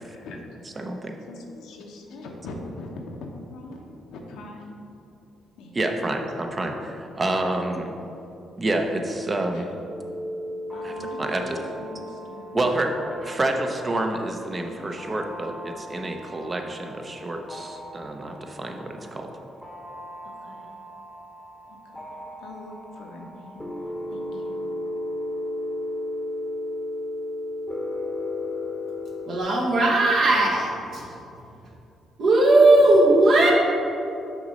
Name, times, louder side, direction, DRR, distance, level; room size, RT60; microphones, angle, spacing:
voice 1, 0.0-0.4 1.2-4.6 5.6-6.0 9.5-9.6 10.7-12.7 14.8-15.0 18.7-18.8 20.2-20.7 21.7-24.6, left 2 dB, 85° left, 1 dB, 0.9 m, -42 dB
voice 2, 0.8-1.2 5.7-7.9 8.6-9.7 10.8-10.9 11.2-11.6 12.5-12.9 13.2-19.3, right 2 dB, 30° right, 4 dB, 0.7 m, -28 dB
sound 1, 9.9-29.4, left 1 dB, 5° left, 1.0 m, -35 dB
voice 3, 29.3-31.2 32.2-33.5, right 2 dB, 60° right, -2 dB, 1.3 m, -18 dB
6.0 x 4.0 x 5.3 m, 2.7 s
cardioid pair, 90°, 0 cm